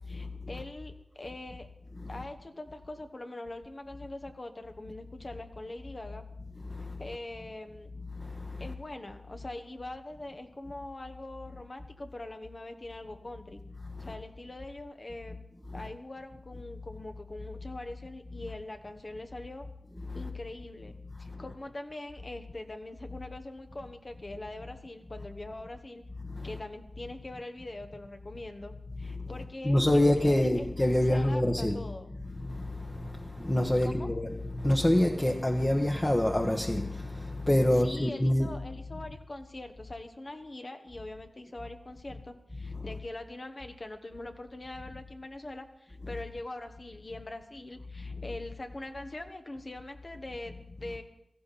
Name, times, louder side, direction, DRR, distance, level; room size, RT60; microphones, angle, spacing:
voice 1, 0.1-1.7 2.1-6.2 7.0-7.9 8.6-13.6 14.0-15.4 15.7-19.7 20.1-26.0 26.4-30.7 31.0-32.1 33.8-34.1 37.7-51.0, left 2 dB, 45° left, 1.3 m, -43 dB
voice 2, 6.7-7.0 8.1-8.7 13.9-14.1 15.8-15.9 20.1-20.2 21.2-21.4 26.2-26.5 29.2-29.3 29.6-31.8 32.3-38.5 42.7-42.8, left 1 dB, 20° left, 1.3 m, -27 dB
17.0 x 14.0 x 4.2 m
wide cardioid pair, 55°, 0 cm